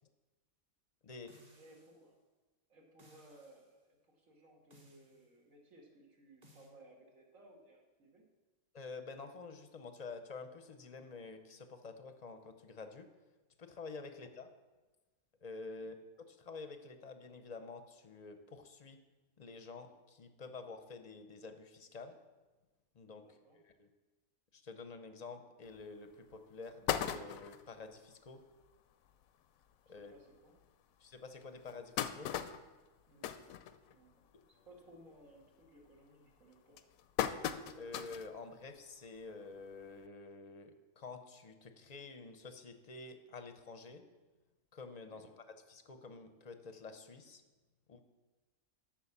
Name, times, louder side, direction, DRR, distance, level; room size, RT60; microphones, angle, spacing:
sound 1, 1.3-2.1 3.0-3.7 4.7-5.3 6.4-6.7, equal, 30° right, 1.3 m, -63 dB
voice 1, 1.5-2.2 2.7-8.2 14.1-14.2 15.8-15.9 23.2-23.6 29.9-30.6 33.1-33.4 33.9-36.8 45.1-45.3, right 1 dB, 75° right, -1 dB, 2.1 m, -61 dB
voice 2, 8.7-13.1 13.6-14.5 15.4-16.0 16.3-19.0 19.4-22.2 23.0-23.9 24.5-28.4 29.9-30.1 31.0-32.3 37.8-44.0 44.7-47.4 47.9-48.0, left 3 dB, 40° left, 8 dB, 0.6 m, -49 dB
sound 2, 25.7-25.8 26.3-26.4 26.6-27.7 28.3-28.4 28.6-28.7 29.1-29.2 29.9-30.0 30.6-30.7 31.4-34.2 34.6-34.9 35.3-35.7 36.3-38.3 38.8-38.9 40.0-40.1, left 10 dB, 85° left, 1.0 m, -38 dB
8.3 x 6.0 x 7.2 m, 1.2 s
omnidirectional pair, 1.4 m